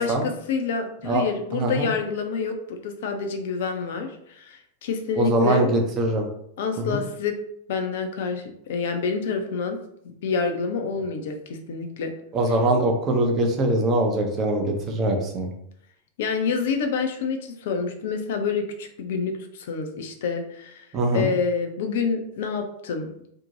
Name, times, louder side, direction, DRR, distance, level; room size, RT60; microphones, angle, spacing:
voice 1, 0.0-5.7 6.6-7.3 7.7-9.8 10.2-12.1 16.2-20.9 21.1-23.3, left 5 dB, 55° left, 5 dB, 0.4 m, -27 dB
voice 2, 1.5-1.9 5.2-6.3 6.8-7.0 12.3-15.5 20.9-21.3, right 2 dB, 30° right, 3 dB, 0.5 m, -22 dB
2.6 x 2.1 x 2.8 m, 0.74 s
figure-of-eight pair, 90°, 0 cm